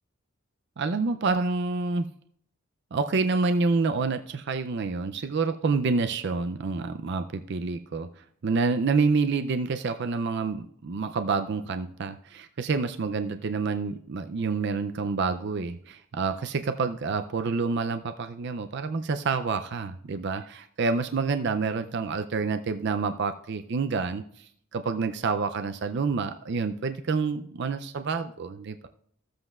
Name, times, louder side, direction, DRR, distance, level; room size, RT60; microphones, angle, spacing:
voice 1, 0.8-2.1 2.9-24.2 24.7-28.9, right 4 dB, 55° right, 8 dB, 0.4 m, -28 dB
15.0 x 7.7 x 2.4 m, 0.63 s
head